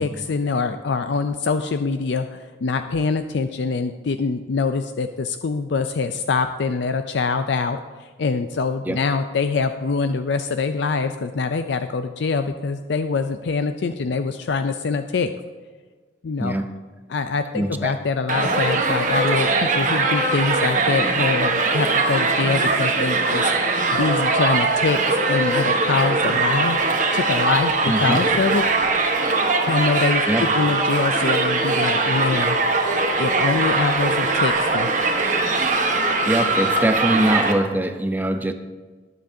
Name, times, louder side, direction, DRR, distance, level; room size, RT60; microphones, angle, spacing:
voice 1, 0.0-15.3 16.2-16.6 17.1-23.5 23.9-26.8 27.1-28.7 29.6-32.6 33.2-34.9, left 4 dB, 70° left, 8 dB, 0.4 m, -24 dB
voice 2, 16.4-16.7 17.5-18.0 27.9-28.2 30.3-30.4 36.3-38.5, right 1 dB, 10° right, 8 dB, 0.5 m, -22 dB
Crowd, 18.3-37.5, right 3 dB, 45° right, 1.2 m, -21 dB
20.5 x 7.6 x 2.7 m, 1.4 s
head